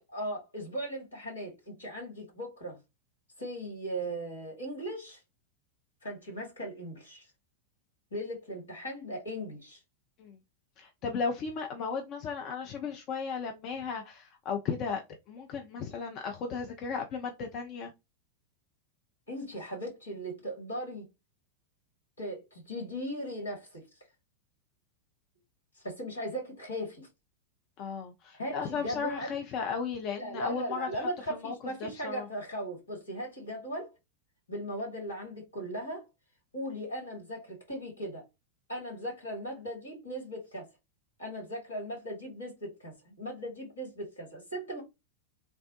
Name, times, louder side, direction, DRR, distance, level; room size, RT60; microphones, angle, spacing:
voice 1, 0.0-2.8 3.4-5.2 6.0-7.2 8.1-9.8 19.3-21.1 22.2-23.8 25.8-27.1 28.3-29.4 30.2-33.9 34.5-36.1 36.5-38.3 38.7-40.7 41.2-44.8, equal, 75° left, 2.0 m, -38 dB
voice 2, 10.8-15.0 15.3-17.9 27.8-31.5 31.8-32.3, left 5 dB, 40° left, 0.5 m, -35 dB
3.4 x 2.1 x 2.7 m
figure-of-eight pair, 90°, 0 cm